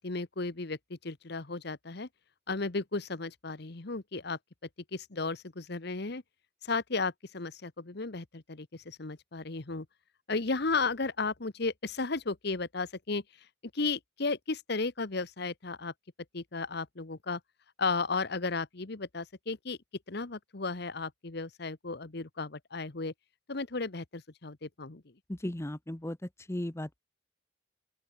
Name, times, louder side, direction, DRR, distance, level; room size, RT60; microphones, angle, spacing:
voice 1, 0.0-2.1 2.5-4.4 4.9-6.2 6.6-9.9 10.3-13.2 13.7-15.9 16.3-17.4 17.8-19.8 20.1-23.1 23.5-25.0, left 3 dB, 55° left, 1.2 m, -34 dB
voice 2, 25.3-27.0, left 1 dB, 15° left, 0.8 m, -36 dB
open air
head